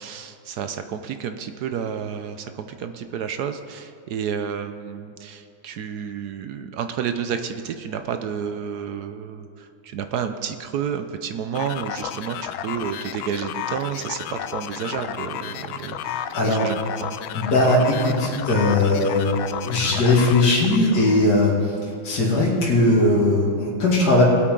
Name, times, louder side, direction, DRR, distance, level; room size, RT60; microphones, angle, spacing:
voice 1, 0.0-17.1, right 7 dB, 70° right, 8 dB, 1.0 m, -30 dB
sound 1, 11.5-21.3, left 10 dB, 80° left, 1.4 m, -32 dB
voice 2, 16.0-16.7 17.3-19.4 19.6-21.8 22.0-24.2, left 2 dB, 50° left, -5 dB, 2.7 m, -19 dB
19.5 x 8.4 x 3.8 m, 2.6 s
omnidirectional pair, 2.2 m